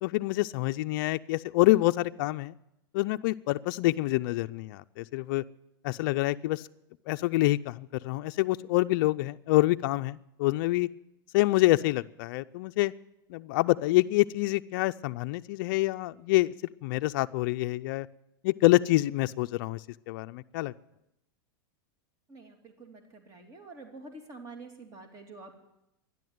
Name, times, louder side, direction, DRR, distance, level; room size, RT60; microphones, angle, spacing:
voice 1, 0.0-2.5 2.9-5.4 5.8-6.6 7.1-10.9 11.3-12.9 13.3-16.5 16.8-18.1 18.4-19.8 20.1-20.7, left 18 dB, 60° left, 10 dB, 0.5 m, -26 dB
voice 2, 22.3-25.5, right 3 dB, 30° right, 4 dB, 2.9 m, -47 dB
12.5 x 11.0 x 9.4 m, 0.86 s
supercardioid pair, 130°, 12 cm